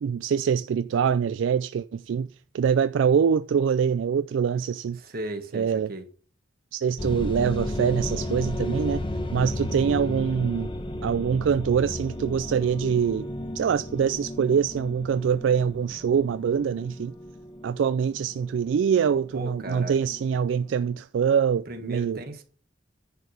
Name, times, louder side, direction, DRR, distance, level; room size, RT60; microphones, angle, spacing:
voice 1, 0.0-2.3 2.5-5.0 5.5-5.9 6.7-9.0 9.3-10.7 11.0-13.3 13.5-17.1 17.6-22.2, right 7 dB, 75° right, 0.3 m, -24 dB
voice 2, 5.0-6.1 19.3-20.0 21.6-22.4, right 1 dB, 50° right, 1.5 m, -36 dB
sound 1, 7.0-21.0, left 1 dB, 25° left, 1.0 m, -34 dB
10.5 x 4.6 x 6.5 m
head